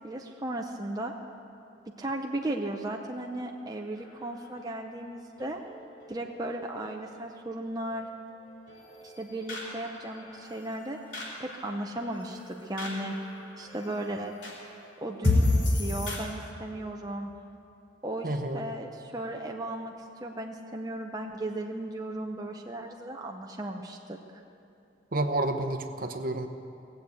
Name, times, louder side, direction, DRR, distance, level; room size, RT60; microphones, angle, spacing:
voice 1, 0.0-1.1 2.0-5.6 6.1-8.1 9.0-11.0 11.4-13.1 13.6-14.3 15.0-17.3 18.0-19.9 20.2-24.2, right 1 dB, 20° right, 1 dB, 0.6 m, -36 dB
sound 1, 4.0-16.2, left 2 dB, 65° left, 3.9 m, -34 dB
voice 2, 18.2-18.6 25.1-26.5, right 2 dB, 45° right, 7 dB, 0.8 m, -30 dB
18.0 x 7.8 x 8.3 m, 2.7 s
head